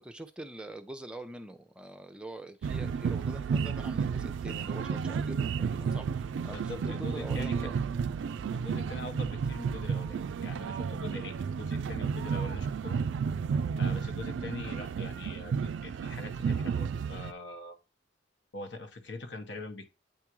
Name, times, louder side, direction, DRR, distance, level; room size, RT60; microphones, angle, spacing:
voice 1, 0.0-6.7 7.0-7.8, right 1 dB, 5° right, 0.5 m, -44 dB
sound 1, 2.6-17.3, right 6 dB, 75° right, 0.3 m, -32 dB
voice 2, 6.5-7.7 8.5-13.1 13.8-17.8 18.5-19.9, left 2 dB, 65° left, 1.1 m, -42 dB
8.9 x 3.5 x 3.0 m
head